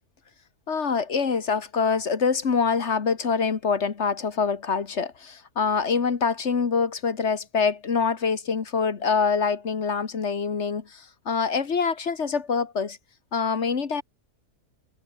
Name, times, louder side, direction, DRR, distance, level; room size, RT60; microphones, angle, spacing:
voice 1, 0.7-13.0 13.3-14.0, left 5 dB, 45° left, 1.7 m, -25 dB
omnidirectional pair, 1.7 m